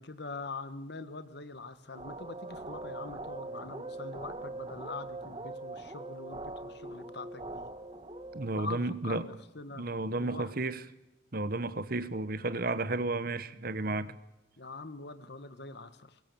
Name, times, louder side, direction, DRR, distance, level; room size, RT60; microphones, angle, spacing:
voice 1, 0.0-7.7 8.6-9.8 10.2-10.5 14.6-16.2, left 3 dB, 55° left, 13 dB, 1.5 m, -43 dB
sound 1, 1.9-8.5, right 2 dB, 25° right, 1.4 m, -42 dB
voice 2, 8.3-9.2 9.7-10.8 11.3-14.2, right 2 dB, 45° right, 14 dB, 1.1 m, -32 dB
25.0 x 21.5 x 7.0 m, 0.94 s
head